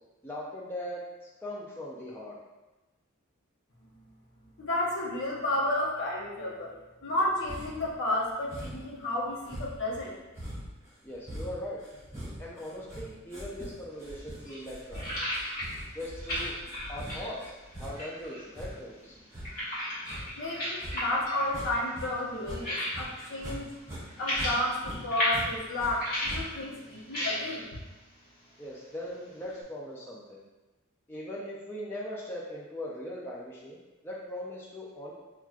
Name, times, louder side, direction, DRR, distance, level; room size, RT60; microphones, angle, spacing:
voice 1, 0.2-1.0 1.4-2.4 11.0-11.8 12.4-15.2 15.9-16.6 16.9-17.5 17.8-19.2 28.6-30.4 31.1-33.8 34.0-35.1, left 1 dB, 10° left, -5 dB, 0.4 m, -40 dB
voice 2, 4.6-6.7 7.0-10.1 20.4-23.7 24.2-27.7, left 1 dB, 60° left, -4 dB, 0.9 m, -31 dB
sound 1, 7.5-7.9 8.5-9.0 9.4-22.1 22.4-23.6 23.8-25.9 26.2-26.7, equal, 15° right, 1.4 m, -42 dB
sound 2, 13.9-29.6, equal, 45° left, 1.5 m, -37 dB
5.8 x 2.3 x 2.4 m, 1.1 s
head